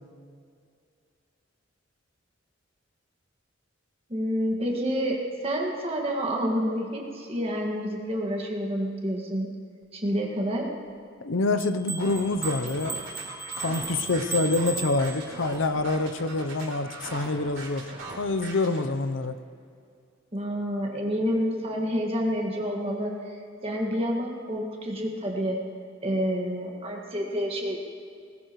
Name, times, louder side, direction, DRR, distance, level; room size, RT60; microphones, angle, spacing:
voice 1, 4.1-5.2 5.4-9.5 9.9-10.7 20.3-25.6 26.0-27.8, equal, 30° right, 0 dB, 1.9 m, -28 dB
voice 2, 11.2-13.0 13.6-17.9 18.2-19.3, left 3 dB, 70° left, 9 dB, 0.7 m, -26 dB
sound 1, 11.6-15.6, right 4 dB, 15° right, 0.8 m, -36 dB
sound 2, 12.0-18.8, right 2 dB, 70° right, 3.5 m, -40 dB
20.0 x 16.0 x 3.1 m, 2.4 s
head